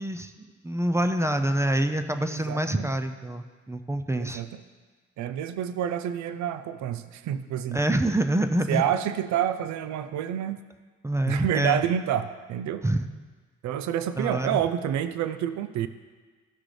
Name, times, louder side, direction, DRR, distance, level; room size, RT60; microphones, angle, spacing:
voice 1, 0.0-4.4 7.7-8.8 11.0-11.8 12.8-13.1 14.2-14.6, right 1 dB, 10° right, 8 dB, 0.5 m, -26 dB
voice 2, 2.3-2.9 4.2-4.6 5.2-7.8 8.7-10.6 11.3-12.8 13.6-15.9, right 10 dB, 70° right, 11 dB, 0.5 m, -28 dB
15.0 x 6.1 x 3.3 m, 1.4 s
cardioid pair, 90°, 30 cm